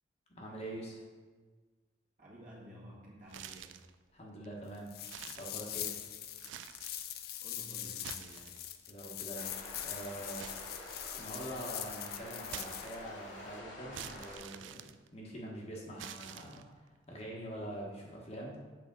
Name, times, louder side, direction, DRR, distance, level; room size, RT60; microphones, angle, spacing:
voice 1, 0.3-1.0 4.1-5.0 5.4-5.9 8.9-10.5 11.2-14.8 15.1-16.6 17.1-18.6, right 1 dB, 35° left, -3 dB, 1.2 m, -44 dB
voice 2, 2.2-3.8 7.4-8.6, equal, 45° right, -5 dB, 1.8 m, -52 dB
sound 1, 3.3-3.9 4.4-4.5 5.0-6.0 6.4-7.0 7.9-8.9 10.4-11.4 12.5-13.3 13.9-15.5 16.0-16.9, right 10 dB, 90° right, 0.4 m, -48 dB
sound 2, 4.9-13.0, left 11 dB, 55° left, 0.4 m, -42 dB
sound 3, 9.3-14.4, left 1 dB, 90° left, 2.0 m, -48 dB
7.8 x 6.0 x 3.8 m, 1.4 s
head